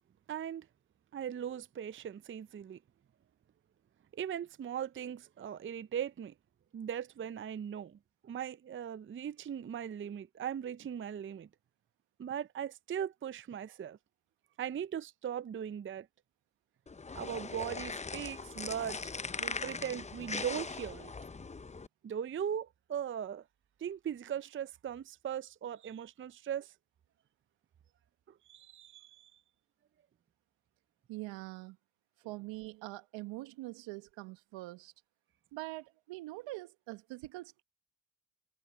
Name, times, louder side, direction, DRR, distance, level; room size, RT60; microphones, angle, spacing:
voice 1, 0.3-0.7 1.1-2.8 4.1-6.3 6.7-8.0 8.2-11.5 12.2-14.0 14.6-16.1 17.1-21.1 22.0-23.4 23.8-26.7 28.5-29.4, right 9 dB, 25° right, 0.6 m, -39 dB
sound 1, 16.9-21.9, left 4 dB, 15° left, 0.8 m, -40 dB
voice 2, 31.1-31.8 32.2-34.9 35.5-37.6, right 19 dB, 70° right, 1.4 m, -44 dB
hypercardioid pair, 55°, 46 cm